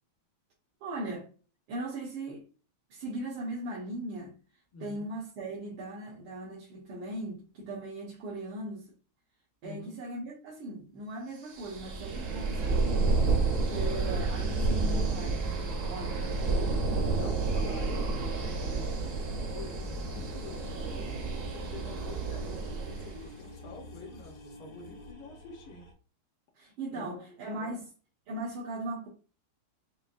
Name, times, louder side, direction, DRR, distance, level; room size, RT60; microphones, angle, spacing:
voice 1, 0.8-1.3 1.7-2.5 2.9-4.3 4.8-8.9 9.6-13.2 13.6-16.1 26.6-27.9 28.3-29.1, right 2 dB, 85° right, 1.8 m, -38 dB
voice 2, 4.7-5.1 9.6-10.0 16.6-21.0 21.4-25.9 26.9-27.3 27.6-27.8, left 4 dB, 80° left, 1.7 m, -48 dB
sound 1, 11.5-23.3, right 3 dB, 60° right, 0.8 m, -30 dB
sound 2, 13.4-25.9, left 1 dB, 40° left, 0.4 m, -46 dB
sound 3, 16.7-25.1, left 3 dB, 60° left, 0.9 m, -48 dB
5.7 x 2.2 x 2.4 m
omnidirectional pair, 2.2 m